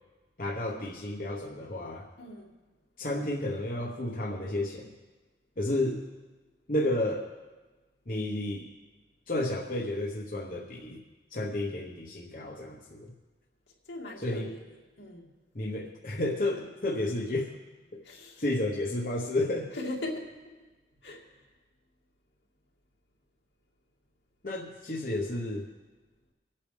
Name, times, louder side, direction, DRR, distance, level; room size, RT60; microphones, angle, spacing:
voice 1, 0.4-2.1 3.0-4.9 5.6-6.0 6.7-7.3 8.1-8.7 9.3-11.0 11.3-13.1 14.2-14.5 15.5-17.5 17.9-18.0 18.4-19.7 24.4-25.6, left 1 dB, 50° left, -2 dB, 1.0 m, -31 dB
voice 2, 2.2-2.5 13.9-15.3 18.0-18.4 19.7-20.3 21.0-21.2, left 2 dB, 85° left, -2 dB, 2.3 m, -39 dB
25.5 x 8.6 x 3.3 m, 1.2 s
head